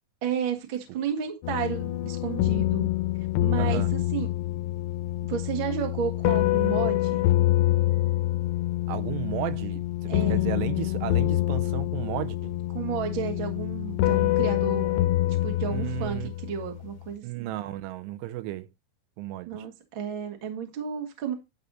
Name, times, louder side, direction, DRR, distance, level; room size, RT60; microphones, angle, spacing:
voice 1, 0.2-2.9 3.4-4.3 5.2-7.2 10.1-10.5 12.7-15.1 15.4-17.5 19.4-21.3, right 8 dB, 60° right, 1.2 m, -32 dB
sound 1, 1.4-16.9, left 15 dB, 80° left, 2.6 m, -26 dB
voice 2, 3.6-3.9 8.9-12.5 15.7-16.3 17.2-18.7 19.2-19.7, right 15 dB, 85° right, 3.1 m, -34 dB
11.5 x 4.1 x 5.5 m
omnidirectional pair, 5.5 m